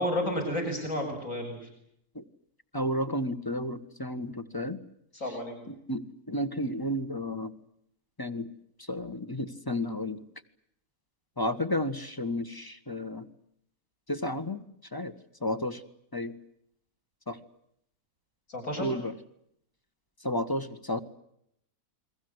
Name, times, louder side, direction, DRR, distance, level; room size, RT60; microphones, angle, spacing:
voice 1, 0.0-1.7 5.1-5.6 18.5-18.9, left 1 dB, 55° left, 2 dB, 8.2 m, -31 dB
voice 2, 2.7-4.8 5.7-7.5 8.2-8.5 8.9-10.2 11.4-13.3 14.1-14.6 14.9-15.1 15.4-15.8 16.1-16.3 17.3-17.4 18.8-19.1 20.2-21.0, left 1 dB, 15° left, 10 dB, 1.5 m, -32 dB
29.5 x 22.5 x 8.1 m, 0.74 s
omnidirectional pair, 1.6 m